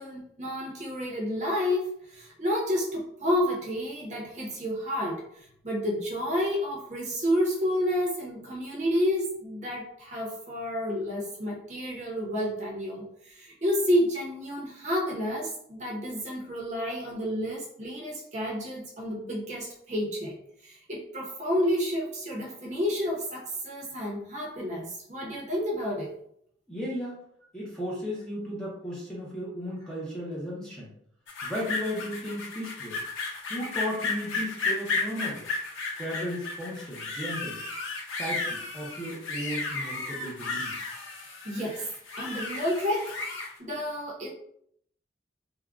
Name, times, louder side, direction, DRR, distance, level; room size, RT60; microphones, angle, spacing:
voice 1, 0.0-5.2 5.6-20.3 20.6-26.1 41.4-41.9 42.2-43.2 43.6-44.3, equal, 35° right, -3 dB, 0.7 m, -30 dB
voice 2, 26.7-27.2 27.5-30.9 31.4-33.0 33.5-35.5 36.0-37.6 38.2-40.7, equal, 5° left, -6 dB, 0.6 m, -35 dB
sound 1, 31.3-43.5, left 3 dB, 90° left, 0.6 m, -34 dB
3.6 x 2.2 x 2.3 m, 0.69 s
head